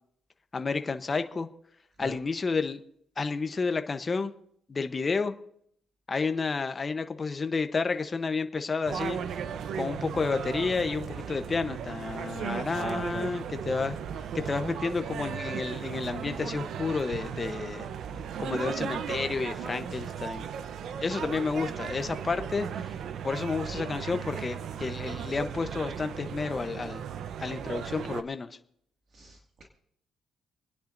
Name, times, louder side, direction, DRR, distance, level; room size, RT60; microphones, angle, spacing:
voice 1, 0.5-1.5 2.0-2.8 3.2-4.3 4.7-5.3 6.1-9.2 9.7-14.0 14.3-17.9 18.4-20.5 21.0-22.9 23.2-27.0 27.4-28.6, left 4 dB, 30° left, 9 dB, 0.9 m, -31 dB
sound 1, 8.8-28.2, right 8 dB, 70° right, 0.7 m, -36 dB
voice 2, 12.7-13.3 29.1-29.6, right 2 dB, 55° right, 0 dB, 2.1 m, -38 dB
28.5 x 10.0 x 2.6 m, 0.70 s
cardioid pair, 90°, 0 cm